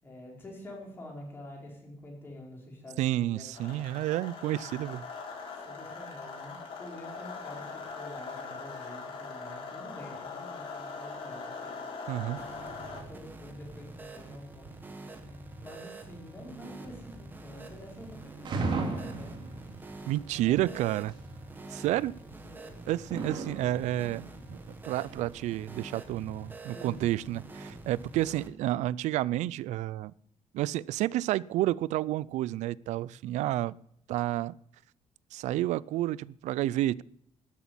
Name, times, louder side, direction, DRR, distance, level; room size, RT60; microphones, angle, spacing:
voice 1, 0.0-3.8 5.5-11.8 12.8-15.3 15.6-19.5 20.2-20.7 21.6-22.1 22.4-22.9 26.7-27.0, left 1 dB, 20° left, 4.7 m, -48 dB
voice 2, 3.0-5.0 12.1-12.4 20.1-21.1 21.7-22.2 22.9-24.6 24.8-30.1 30.5-33.8 34.1-34.5 35.3-37.0, right 14 dB, 90° right, 0.4 m, -30 dB
sound 1, 3.5-13.0, left 4 dB, 50° left, 3.8 m, -41 dB
sound 2, 12.4-28.5, right 2 dB, 15° right, 1.5 m, -46 dB
sound 3, 17.9-18.1 18.4-20.3 20.8-21.3 22.1-22.5 22.9-25.8, right 3 dB, 40° right, 2.5 m, -35 dB
13.0 x 8.4 x 9.5 m
cardioid pair, 180°, 12 cm